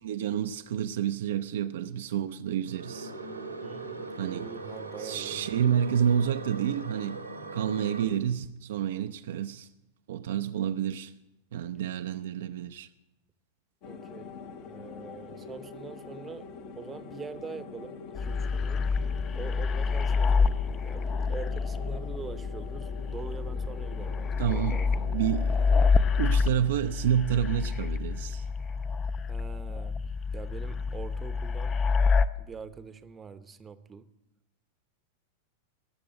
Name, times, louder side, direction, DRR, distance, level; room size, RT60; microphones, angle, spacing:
voice 1, 0.0-3.1 4.2-4.5 5.0-7.2 7.5-9.7 10.1-11.1 11.5-12.9 24.4-25.7 26.2-28.5, right 9 dB, 60° right, 0.5 m, -29 dB
sound 1, 2.7-8.0, right 3 dB, 85° right, 1.4 m, -40 dB
voice 2, 3.6-5.5 13.9-16.5 16.8-18.9 19.3-20.6 20.8-25.1 29.3-30.0 30.3-31.8 32.4-34.1, right 6 dB, 20° right, 0.8 m, -44 dB
sound 2, 13.8-28.4, left 5 dB, 45° left, 0.9 m, -45 dB
sound 3, 18.1-32.2, left 5 dB, 25° left, 0.5 m, -28 dB
20.0 x 6.9 x 7.9 m
figure-of-eight pair, 90°, 0 cm